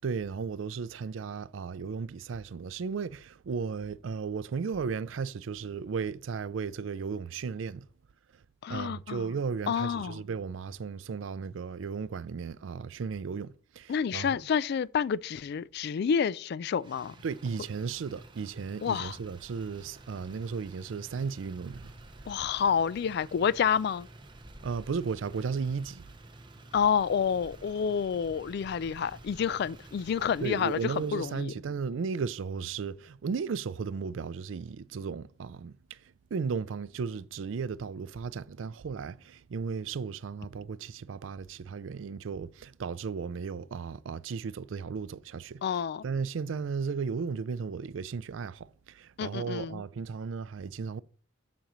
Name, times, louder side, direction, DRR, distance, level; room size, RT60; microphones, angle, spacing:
voice 1, 0.0-7.9 8.7-14.4 17.2-21.9 24.6-26.1 30.4-36.0 36.3-45.6 46.0-51.0, right 5 dB, 80° right, 0.4 m, -35 dB
voice 2, 8.6-9.3 9.7-10.2 13.9-17.1 18.8-19.2 22.3-24.1 26.7-31.5 45.6-46.0 49.2-49.8, left 7 dB, 55° left, 0.3 m, -29 dB
Motor vehicle (road), 16.8-31.4, right 2 dB, 25° right, 0.8 m, -51 dB
13.5 x 5.1 x 3.0 m
head